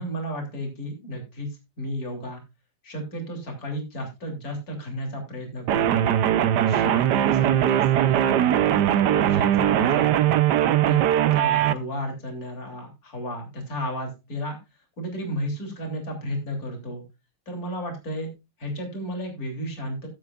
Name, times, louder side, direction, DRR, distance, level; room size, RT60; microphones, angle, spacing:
voice 1, 0.0-1.5 1.8-2.4 2.8-6.1 6.6-10.4 10.9-11.0 11.3-17.0 17.5-18.3 18.6-20.1, equal, 50° left, 2 dB, 3.7 m, -33 dB
sound 1, 5.7-11.7, right 11 dB, 70° right, 1.3 m, -20 dB
16.0 x 8.3 x 2.4 m, 0.25 s
omnidirectional pair, 2.0 m